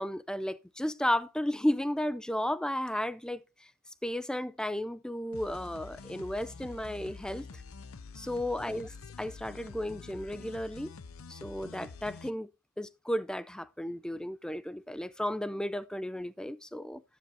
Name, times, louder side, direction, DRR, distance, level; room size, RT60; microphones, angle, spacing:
voice 1, 0.0-3.4 4.0-7.5 8.1-8.9 9.2-10.9 11.3-12.5 12.8-17.0, left 1 dB, 5° left, 0.4 m, -33 dB
sound 1, 5.3-12.3, left 4 dB, 75° left, 0.6 m, -47 dB
12.0 x 10.0 x 2.6 m
head